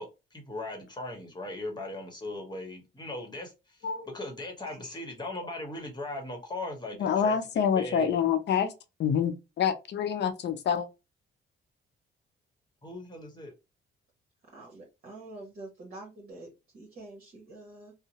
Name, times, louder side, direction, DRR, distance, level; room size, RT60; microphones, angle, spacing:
voice 1, 0.0-3.8 4.1-8.2 12.8-13.5, left 2 dB, 20° left, 1.1 m, -39 dB
voice 2, 4.6-5.0 14.5-17.9, right 2 dB, 45° right, 1.0 m, -47 dB
voice 3, 7.0-8.7 9.0-10.9, left 7 dB, 60° left, 0.5 m, -27 dB
2.7 x 2.0 x 2.8 m
cardioid pair, 90°, 20 cm